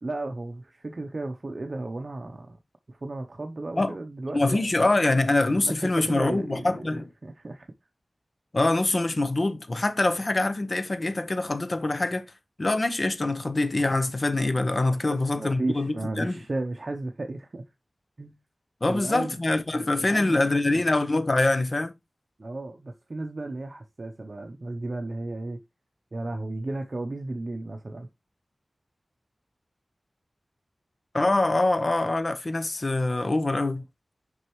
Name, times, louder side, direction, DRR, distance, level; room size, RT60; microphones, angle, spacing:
voice 1, 0.0-2.6 2.9-4.9 5.5-7.7 15.0-17.7 18.2-18.4 18.9-19.4 19.7-20.8 22.4-25.6 26.1-28.1, right 2 dB, 50° right, 0.6 m, -34 dB
voice 2, 4.3-7.1 8.5-12.3 12.6-16.4 18.8-21.9 31.1-33.8, left 2 dB, 45° left, 0.7 m, -24 dB
6.2 x 5.4 x 3.0 m
wide cardioid pair, 85°, 0 cm